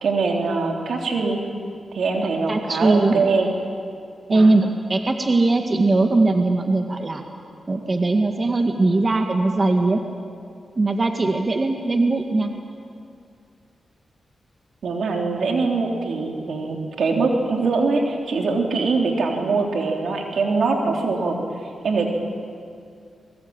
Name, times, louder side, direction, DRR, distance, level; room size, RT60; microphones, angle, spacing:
voice 1, 0.0-1.4 1.9-3.5 4.3-4.5 14.8-21.4 21.8-22.1, right 4 dB, 80° right, 1 dB, 3.5 m, -22 dB
voice 2, 2.5-3.3 4.3-7.2 7.7-10.0 10.8-12.5, right 2 dB, 40° right, 4 dB, 1.9 m, -20 dB
24.5 x 22.0 x 8.9 m, 2.4 s
cardioid pair, 55°, 0 cm